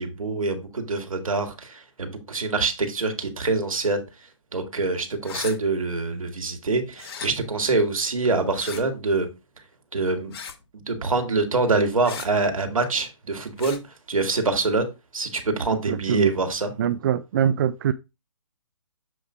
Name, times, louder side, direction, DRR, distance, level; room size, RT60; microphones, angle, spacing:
voice 1, 0.0-4.0 4.5-9.3 9.9-10.3 10.7-13.8 14.1-14.9 15.1-16.7, right 3 dB, 85° right, 1.8 m, -25 dB
sound 1, 5.2-5.6 7.0-7.3 8.5-8.8 10.3-10.6 12.0-12.3 13.6-13.8, left 7 dB, 45° left, 1.1 m, -36 dB
voice 2, 15.9-16.3 16.8-17.9, right 9 dB, 40° right, 0.4 m, -23 dB
7.3 x 3.1 x 4.9 m
hypercardioid pair, 145°, 17 cm